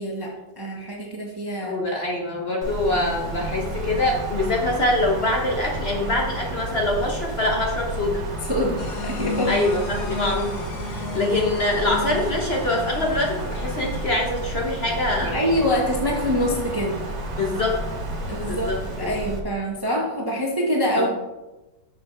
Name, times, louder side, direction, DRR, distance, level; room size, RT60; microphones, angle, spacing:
voice 1, 0.0-1.8 8.4-9.5 15.2-17.0 18.3-18.7 19.0-21.1, equal, 15° right, -1 dB, 0.8 m, -25 dB
voice 2, 1.6-8.2 9.5-15.4 17.4-17.8 18.5-18.8 21.0-21.1, left 2 dB, 40° left, -1 dB, 1.1 m, -24 dB
Wind, 2.6-19.4, right 1 dB, 75° right, 1.9 m, -31 dB
sound 1, 8.8-14.2, left 4 dB, 70° left, 1.2 m, -35 dB
6.7 x 6.5 x 4.4 m, 1.1 s
omnidirectional pair, 1.9 m